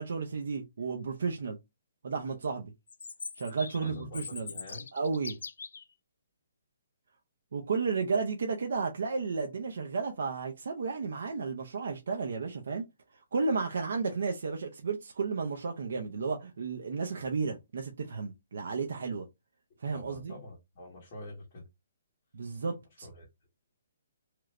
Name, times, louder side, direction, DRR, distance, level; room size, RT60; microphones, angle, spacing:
voice 1, 0.0-1.6 2.0-2.7 3.4-4.5 4.9-5.4 7.5-12.8 13.3-19.3 19.8-20.3 22.3-23.1, right 4 dB, 55° right, 0.5 m, -33 dB
Chirp tweet, 2.9-5.9, left 5 dB, 90° left, 0.4 m, -42 dB
voice 2, 3.8-4.9 19.9-21.6 22.9-23.3, left 1 dB, 25° left, 0.9 m, -46 dB
3.0 x 2.4 x 3.1 m
hypercardioid pair, 180°, 0 cm